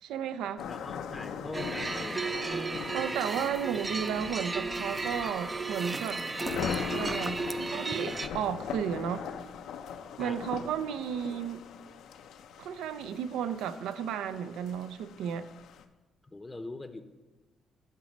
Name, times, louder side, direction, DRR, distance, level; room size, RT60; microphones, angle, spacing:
voice 1, 0.0-0.7 2.9-6.2 6.9-9.2 10.2-11.6 12.6-15.5, right 8 dB, 90° right, 12 dB, 0.4 m, -33 dB
sound 1, 0.6-15.8, left 7 dB, 80° left, 0.5 m, -41 dB
voice 2, 0.7-2.6 10.2-10.4 16.2-17.0, left 2 dB, 20° left, 8 dB, 0.6 m, -42 dB
sound 2, 1.5-8.3, right 3 dB, 25° right, 0.4 m, -34 dB
11.5 x 4.0 x 5.2 m, 1.2 s
cardioid pair, 90°, 0 cm